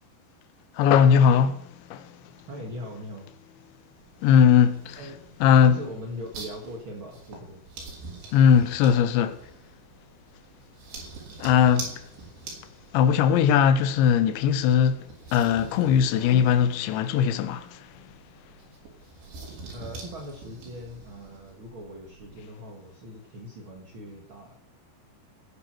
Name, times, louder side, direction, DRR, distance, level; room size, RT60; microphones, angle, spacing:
voice 1, 0.7-2.5 4.2-5.0 5.4-5.8 8.3-9.5 11.4-12.1 12.9-18.2, left 8 dB, 90° left, 3.2 m, -20 dB
voice 2, 2.5-3.3 5.0-7.6 19.5-24.6, equal, 60° right, 1.3 m, -40 dB
sound 1, 4.0-22.4, right 3 dB, 80° right, 5.5 m, -45 dB
17.0 x 8.8 x 6.3 m
omnidirectional pair, 5.1 m